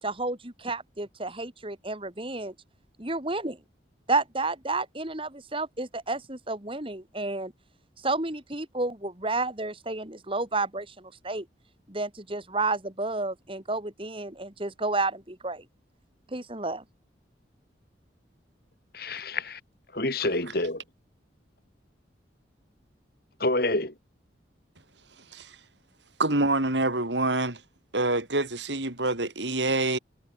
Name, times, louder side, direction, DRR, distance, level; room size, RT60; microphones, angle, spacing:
voice 1, 0.0-2.5 3.0-3.6 4.1-7.5 8.0-11.5 11.9-15.6 16.3-16.8, right 2 dB, 30° right, 2.8 m, -31 dB
voice 2, 18.9-19.6 19.9-20.8 23.4-23.9, left 2 dB, 55° left, 4.3 m, -27 dB
voice 3, 26.2-27.6 27.9-30.0, right 2 dB, 75° right, 4.3 m, -26 dB
head